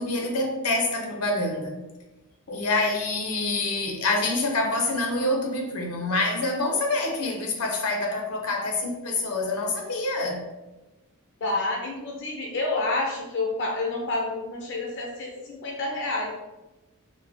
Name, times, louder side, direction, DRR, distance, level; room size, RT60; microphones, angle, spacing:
voice 1, 0.0-1.8 2.5-10.4, left 2 dB, 85° left, 2 dB, 0.7 m, -26 dB
voice 2, 11.4-16.3, left 2 dB, 55° left, -1 dB, 0.4 m, -29 dB
3.3 x 2.1 x 3.5 m, 1.0 s
head